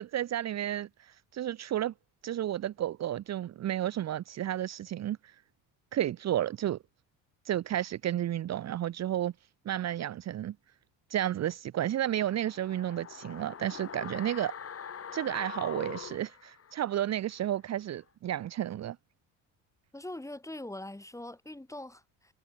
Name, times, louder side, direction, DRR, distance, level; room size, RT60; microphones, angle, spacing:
voice 1, 0.0-1.9 2.2-5.3 5.9-6.8 7.4-9.3 9.6-10.5 11.1-14.5 15.1-19.0, right 12 dB, 50° right, 0.9 m, -32 dB
sound 1, 11.9-17.1 17.4-17.5, left 7 dB, 40° left, 3.8 m, -44 dB
voice 2, 19.9-22.3, left 1 dB, 10° left, 5.2 m, -42 dB
supercardioid pair, 75°, 35 cm